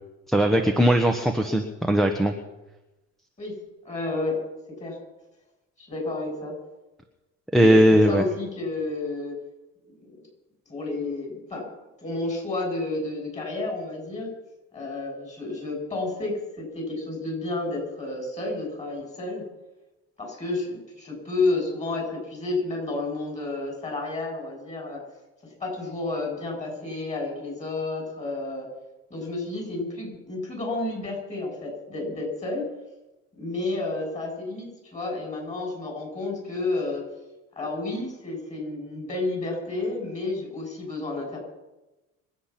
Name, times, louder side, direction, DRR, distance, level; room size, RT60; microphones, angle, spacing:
voice 1, 0.3-2.3 7.5-8.2, equal, ahead, 3 dB, 1.2 m, -19 dB
voice 2, 3.8-4.4 4.8-5.0 5.8-6.6 7.6-7.8 8.1-9.3 9.9-10.1 10.7-11.7 12.0-14.3 14.7-19.4 20.2-25.0 25.6-28.7 29.1-32.6 33.3-37.0 37.6-41.4, left 2 dB, 20° left, 0 dB, 7.7 m, -31 dB
25.5 x 8.7 x 5.9 m, 1.0 s
cardioid pair, 110°, 31 cm